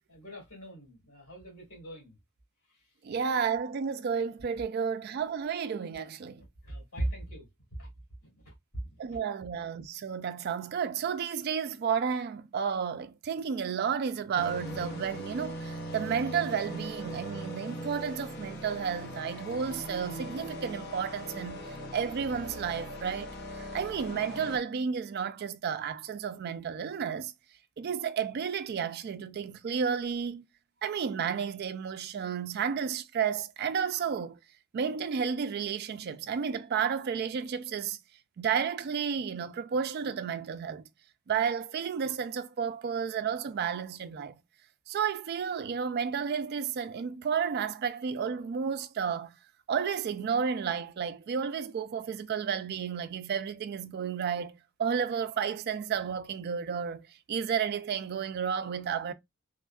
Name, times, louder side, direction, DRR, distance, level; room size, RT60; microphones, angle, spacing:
voice 1, 0.1-2.2 2.7-2.9 6.4-7.5 7.8-7.9 8.2-8.5 9.1-9.2, right 1 dB, 80° left, 2.2 m, -39 dB
voice 2, 3.0-6.4 9.0-27.3 27.8-30.4 30.8-34.4 34.7-38.0 38.4-40.9 41.3-44.4 44.9-49.3 49.7-59.1, right 7 dB, 45° right, 0.3 m, -32 dB
sound 1, 14.4-24.6, equal, 50° left, 0.6 m, -40 dB
3.4 x 2.3 x 2.2 m
head